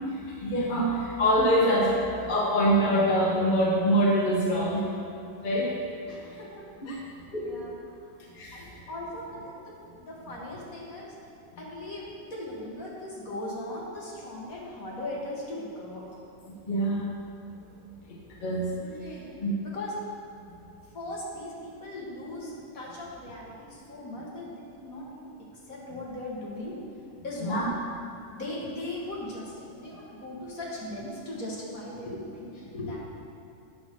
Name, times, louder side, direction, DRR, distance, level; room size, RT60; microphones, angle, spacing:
voice 1, 0.4-4.8 5.4-5.7 6.8-6.9 7.3-7.5 8.4-8.6 16.7-17.1 18.4-18.6 19.4-19.5 27.4-27.6, equal, 30° left, -4 dB, 1.3 m, -24 dB
voice 2, 6.1-8.2 8.5-11.1 11.6-16.1 18.7-20.0 20.8-26.8 27.2-27.8 28.3-33.0, left 1 dB, 50° left, -4 dB, 2.0 m, -39 dB
9.4 x 6.4 x 6.1 m, 2.6 s
omnidirectional pair, 1.9 m